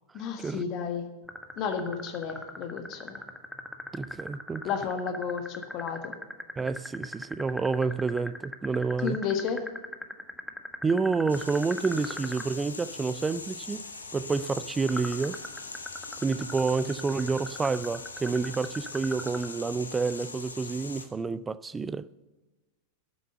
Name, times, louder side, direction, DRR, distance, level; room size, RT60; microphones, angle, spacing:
voice 1, 0.1-1.1 1.6-3.2 4.6-6.1 9.0-9.6, left 6 dB, 40° left, 1.4 m, -32 dB
sound 1, 1.3-12.5 14.9-19.5, left 1 dB, 5° left, 1.2 m, -39 dB
voice 2, 3.9-4.7 6.6-9.2 10.8-13.8 14.1-15.4 16.2-22.1, right 4 dB, 15° right, 0.4 m, -29 dB
sound 2, 11.3-21.1, left 3 dB, 75° left, 1.3 m, -41 dB
11.5 x 9.5 x 6.7 m
figure-of-eight pair, 90°, 0 cm